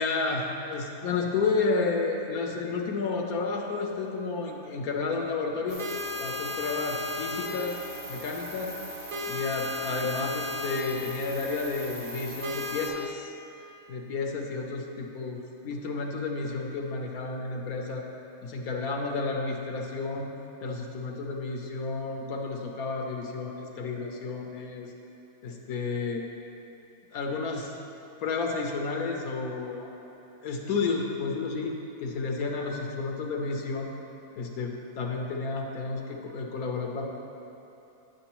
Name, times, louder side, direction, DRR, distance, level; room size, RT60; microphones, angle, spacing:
voice 1, 0.0-5.8 6.2-7.8 8.1-8.7 9.3-13.3 13.9-18.0 18.4-20.3 20.6-24.9 25.4-26.3 27.1-27.7 28.2-29.9 30.4-33.9 34.4-37.0, left 4 dB, 70° left, 1 dB, 1.2 m, -31 dB
sound 1, 5.7-12.9, left 2 dB, 35° right, 1.1 m, -35 dB
10.0 x 7.8 x 3.0 m, 2.9 s
omnidirectional pair, 1.7 m